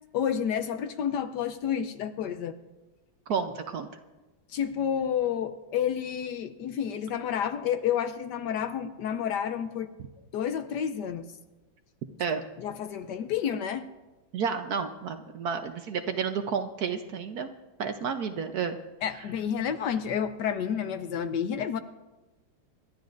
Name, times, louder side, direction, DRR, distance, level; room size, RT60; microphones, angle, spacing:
voice 1, 0.1-2.6 4.5-9.9 10.3-11.3 12.6-13.9 19.0-21.8, left 8 dB, 70° left, 10 dB, 1.1 m, -30 dB
voice 2, 3.3-3.9 12.2-12.4 14.3-17.5 17.8-18.8 19.1-19.2, right 6 dB, 60° right, 7 dB, 1.1 m, -31 dB
27.0 x 12.5 x 2.5 m, 1.1 s
omnidirectional pair, 2.1 m